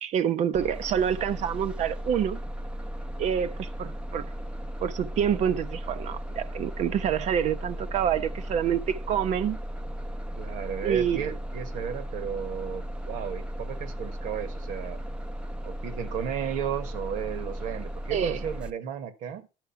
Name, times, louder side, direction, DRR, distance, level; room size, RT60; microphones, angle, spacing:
voice 1, 0.0-2.4 3.2-4.3 4.8-9.6 10.8-11.2 18.1-18.4, right 9 dB, 55° right, 0.7 m, -27 dB
Bus, 0.5-18.7, equal, 5° right, 0.7 m, -36 dB
voice 2, 10.4-15.0 15.6-19.5, right 8 dB, 75° right, 1.4 m, -34 dB
11.5 x 4.8 x 5.7 m
cardioid pair, 105°, 14 cm